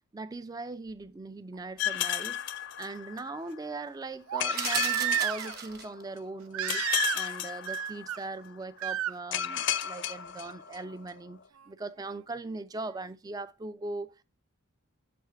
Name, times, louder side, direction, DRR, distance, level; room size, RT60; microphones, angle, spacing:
voice 1, 0.1-2.4 2.8-6.9 7.1-11.4 11.7-14.2, right 3 dB, 20° right, 0.3 m, -40 dB
Crying sobbing, 1.6-1.7 4.3-5.6 6.5-7.4 7.7-8.2 8.8-9.1 10.7-10.8, right 11 dB, 90° right, 0.4 m, -31 dB
sound 1, 1.8-3.4 4.4-6.1 6.7-8.3 9.3-11.1, left 10 dB, 55° left, 0.5 m, -33 dB
sound 2, 4.5-6.0, right 7 dB, 45° right, 0.9 m, -36 dB
7.2 x 3.5 x 4.4 m
head